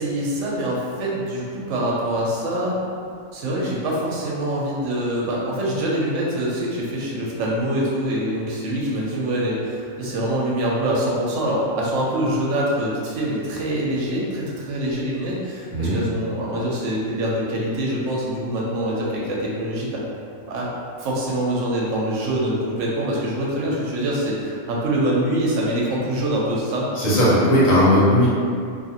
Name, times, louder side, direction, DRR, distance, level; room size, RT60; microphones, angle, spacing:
voice 1, 0.0-2.8 3.3-20.0 20.5-20.7 21.0-26.9, right 1 dB, 70° right, -4 dB, 0.8 m, -24 dB
voice 2, 27.0-28.3, equal, 80° left, -8 dB, 1.2 m, -17 dB
2.5 x 2.4 x 2.7 m, 2.4 s
omnidirectional pair, 1.4 m